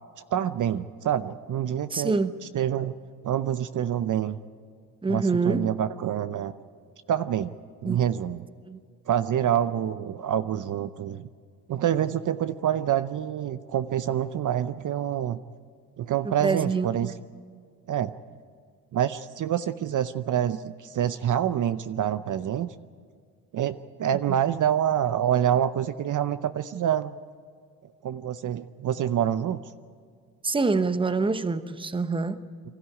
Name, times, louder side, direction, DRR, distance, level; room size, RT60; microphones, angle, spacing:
voice 1, 0.3-2.2 2.5-2.9 3.2-4.4 5.1-6.5 7.1-7.5 7.8-8.4 9.1-11.3 11.7-15.4 16.0-17.1 17.9-18.1 18.9-22.7 23.5-27.1 28.0-29.6, right 10 dB, 50° right, 12 dB, 0.7 m, -26 dB
voice 2, 1.9-2.4 5.0-5.6 7.9-8.1 8.7-8.8 16.2-17.2 24.3-24.4 30.4-32.4, right 4 dB, 15° right, 11 dB, 0.9 m, -26 dB
24.5 x 13.5 x 9.7 m, 2.1 s
cardioid pair, 90°, 40 cm